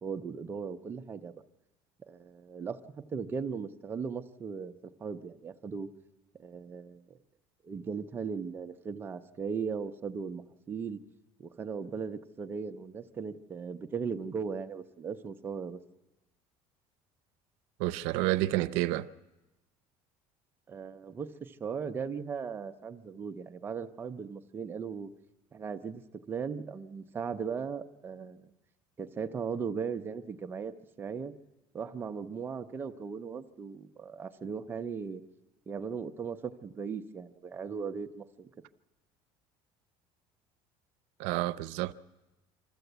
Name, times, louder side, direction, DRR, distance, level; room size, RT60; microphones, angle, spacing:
voice 1, 0.0-1.3 2.1-4.7 5.0-5.9 6.4-7.2 7.6-11.0 11.4-15.8 20.7-25.1 25.5-26.0 26.3-28.5 29.0-31.3 31.7-35.2 35.7-38.5, right 6 dB, 20° right, 0.6 m, -38 dB
voice 2, 17.8-19.1 41.2-41.9, right 17 dB, 85° right, 0.6 m, -29 dB
25.5 x 13.5 x 8.0 m
cardioid pair, 175°, 11 cm